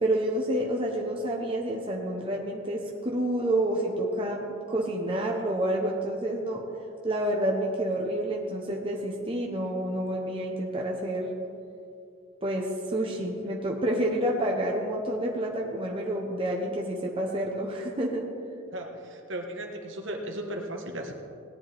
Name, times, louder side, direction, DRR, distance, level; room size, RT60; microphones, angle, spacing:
voice 1, 0.0-6.6 7.0-11.3 12.4-18.3, right 1 dB, 25° right, -1 dB, 0.9 m, -29 dB
voice 2, 18.7-21.1, right 1 dB, 65° right, 2 dB, 1.4 m, -36 dB
17.5 x 10.5 x 3.5 m, 2.6 s
head